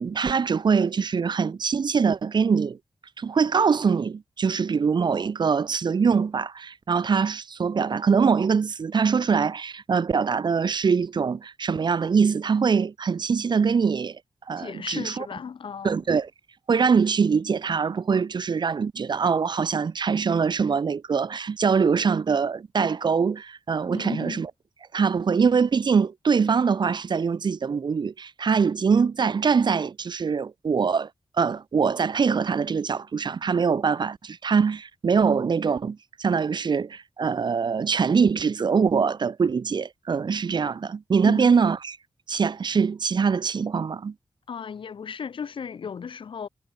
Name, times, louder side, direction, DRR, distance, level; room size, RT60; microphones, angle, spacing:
voice 1, 0.0-2.8 3.2-14.2 14.5-15.3 15.8-16.3 16.7-24.5 24.9-31.1 31.4-42.0 42.3-44.1, right 5 dB, 55° right, 6.9 m, -23 dB
voice 2, 14.6-16.0 23.9-24.4 41.2-41.6 44.5-46.5, left 6 dB, 70° left, 5.4 m, -35 dB
wide cardioid pair, 170°, 9 cm